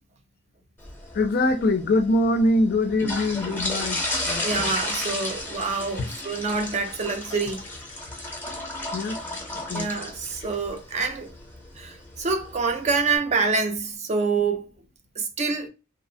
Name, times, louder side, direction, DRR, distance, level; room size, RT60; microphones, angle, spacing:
sound 1, 0.8-13.2, left 2 dB, 10° left, 0.7 m, -34 dB
voice 1, 1.1-4.0 4.3-4.7 8.9-9.2 9.6-9.9, left 1 dB, 50° left, 0.4 m, -23 dB
voice 2, 4.4-7.6 9.7-11.3 11.8-14.7 15.2-15.7, right 4 dB, 35° right, 0.4 m, -26 dB
2.7 x 2.1 x 2.6 m
head